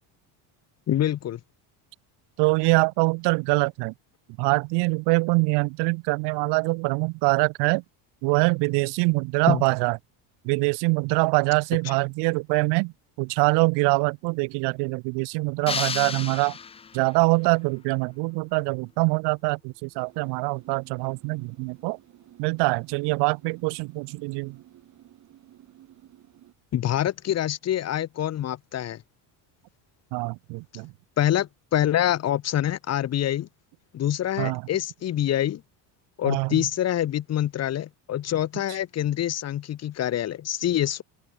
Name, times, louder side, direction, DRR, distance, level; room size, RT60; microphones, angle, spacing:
voice 1, 0.9-1.4 9.5-9.6 26.7-29.0 31.2-33.5 33.9-35.6 36.2-41.0, left 11 dB, 35° left, 2.3 m, -26 dB
voice 2, 2.4-3.9 4.4-7.8 8.2-10.0 10.4-16.6 16.9-22.0 22.4-24.6 30.1-30.9 34.4-34.7 36.2-36.7, right 28 dB, 75° right, 1.0 m, -24 dB
sound 1, 15.7-17.2, left 6 dB, 15° left, 0.5 m, -32 dB
sound 2, 19.9-26.5, right 13 dB, 45° right, 5.3 m, -53 dB
open air
cardioid pair, 160°, 42 cm